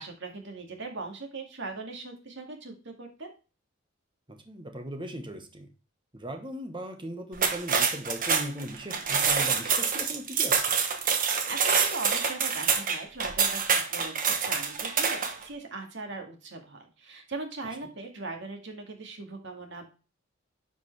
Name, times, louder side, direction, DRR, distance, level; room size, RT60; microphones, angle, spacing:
voice 1, 0.0-3.3 11.2-14.2 14.5-19.9, right 3 dB, 65° right, 3 dB, 2.2 m, -40 dB
voice 2, 4.3-5.7 6.1-10.7, right 1 dB, 25° right, 5 dB, 1.4 m, -38 dB
sound 1, 7.3-15.4, right 6 dB, 45° right, 1.2 m, -26 dB
9.9 x 5.2 x 3.3 m, 0.33 s
head